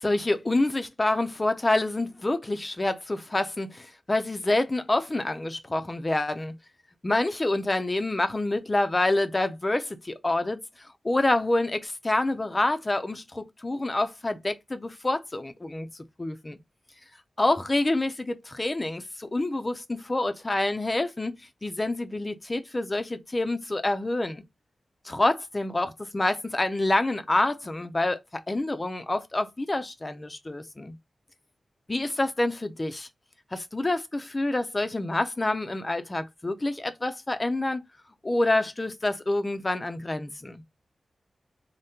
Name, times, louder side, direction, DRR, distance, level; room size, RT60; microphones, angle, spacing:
voice 1, 0.0-6.5 7.0-15.9 16.2-16.6 17.4-24.4 25.0-31.0 31.9-33.1 33.5-37.8 38.2-40.6, left 2 dB, 30° left, 0.5 m, -27 dB
3.4 x 2.1 x 2.8 m
cardioid pair, 55°, 0 cm